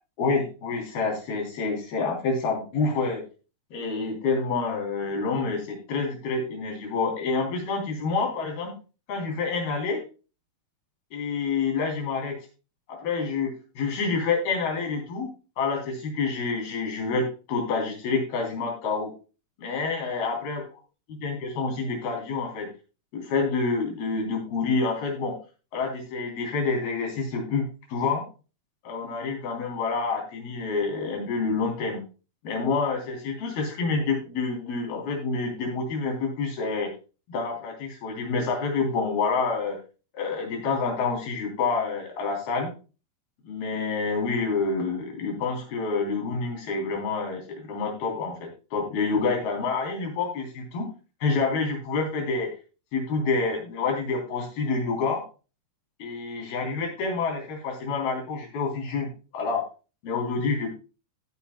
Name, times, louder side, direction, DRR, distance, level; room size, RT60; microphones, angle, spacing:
voice 1, 0.2-3.2 3.7-8.8 9.1-10.0 11.1-12.4 12.9-13.5 13.8-15.3 15.6-19.1 19.6-20.6 21.2-22.7 23.1-25.4 25.7-28.2 28.8-32.0 32.4-36.9 37.3-39.8 40.1-42.7 43.5-50.9 51.2-52.5 52.9-55.2 56.0-59.6 60.0-60.7, left 4 dB, 80° left, 1 dB, 5.3 m, -28 dB
15.0 x 9.0 x 2.3 m, 0.32 s
omnidirectional pair, 4.3 m